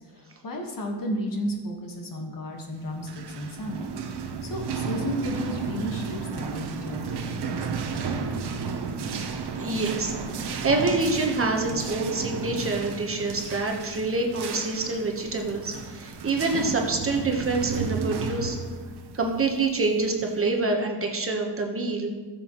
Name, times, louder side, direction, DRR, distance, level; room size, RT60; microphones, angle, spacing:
voice 1, 0.0-3.9 4.4-8.6, equal, 55° left, 2 dB, 1.6 m, -33 dB
sound 1, 2.9-20.3, right 5 dB, 70° right, 0.9 m, -33 dB
voice 2, 9.6-18.6 19.2-22.1, right 3 dB, 30° right, 2 dB, 1.2 m, -26 dB
14.0 x 7.1 x 3.1 m, 1.4 s
wide cardioid pair, 130°, 41 cm